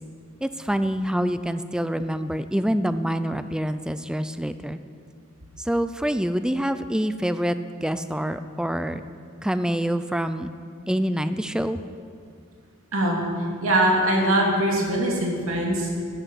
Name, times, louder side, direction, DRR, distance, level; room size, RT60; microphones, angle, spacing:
voice 1, 0.4-4.8 5.6-9.0 9.4-10.5 10.9-11.8, equal, 5° right, 11 dB, 0.4 m, -26 dB
voice 2, 12.9-13.2 13.6-16.0, right 1 dB, 80° right, -1 dB, 2.6 m, -22 dB
12.5 x 11.0 x 5.7 m, 2.2 s
head